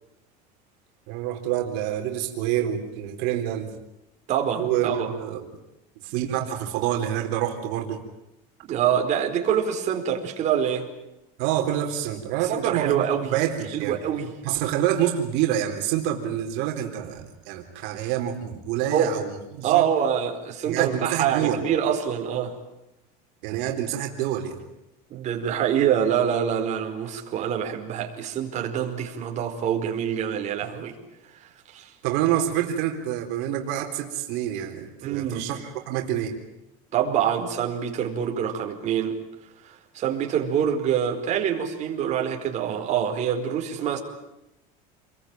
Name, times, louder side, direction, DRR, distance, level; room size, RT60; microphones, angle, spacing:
voice 1, 1.1-3.8 4.6-5.5 6.0-8.0 11.4-14.0 14.4-19.9 20.6-21.6 23.4-24.6 32.0-36.3, right 11 dB, 65° right, 2 dB, 4.0 m, -27 dB
voice 2, 4.3-5.1 8.7-10.9 12.5-13.3 13.7-14.3 18.9-19.1 19.6-22.5 25.1-30.9 31.4-31.9 35.0-35.5 36.9-39.1 39.6-44.0, right 9 dB, 40° right, 3 dB, 4.8 m, -25 dB
29.0 x 22.0 x 9.1 m, 0.92 s
cardioid pair, 155°, 19 cm